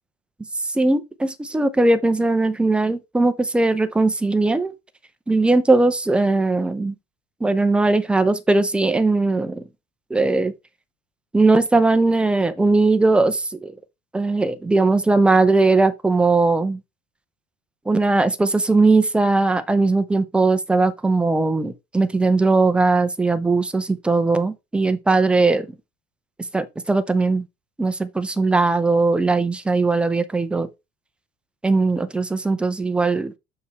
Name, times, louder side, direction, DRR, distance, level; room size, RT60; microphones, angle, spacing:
voice 1, 0.6-4.7 5.3-6.9 7.4-9.6 10.1-10.5 11.3-13.7 14.1-16.8 17.9-25.7 26.5-27.5 27.8-30.7 31.6-33.3, right 3 dB, 5° right, 0.5 m, -19 dB
6.9 x 4.7 x 4.0 m
cardioid pair, 175°, 18 cm